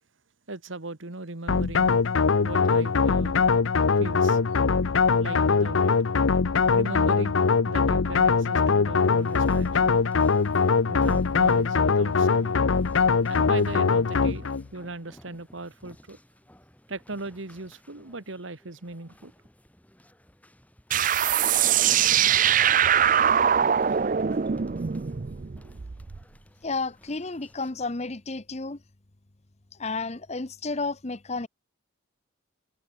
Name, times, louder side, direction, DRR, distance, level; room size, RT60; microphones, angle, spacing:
voice 1, 0.5-1.9 2.4-3.4 4.0-4.4 5.2-5.9 6.7-9.9 10.9-12.5 13.3-16.2 16.9-19.3, right 2 dB, 75° right, 1.8 m, -38 dB
sound 1, 1.5-14.7, left 5 dB, 80° left, 0.7 m, -22 dB
sound 2, 9.0-27.7, equal, 10° left, 7.7 m, -56 dB
sound 3, 20.9-26.2, right 9 dB, 40° right, 0.5 m, -22 dB
voice 2, 26.6-28.8 29.8-31.5, left 3 dB, 35° left, 0.9 m, -31 dB
head